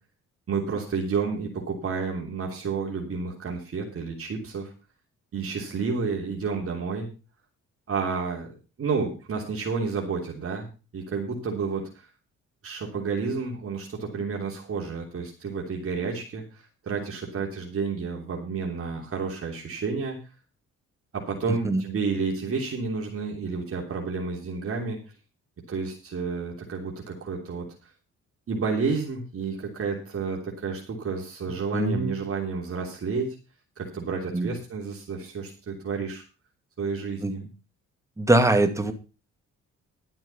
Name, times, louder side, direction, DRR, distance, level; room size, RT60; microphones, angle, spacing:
voice 1, 0.5-4.7 5.3-7.1 7.9-10.7 10.9-12.1 12.6-20.2 21.1-25.0 25.7-27.7 28.5-33.3 33.8-36.2 36.8-37.4, right 5 dB, 50° right, 0 dB, 3.2 m, -30 dB
voice 2, 31.7-32.2 34.3-34.5 37.2-37.5 38.2-38.9, right 2 dB, 10° right, 6 dB, 2.2 m, -22 dB
12.0 x 7.8 x 5.6 m, 0.32 s
cardioid pair, 90°, 30 cm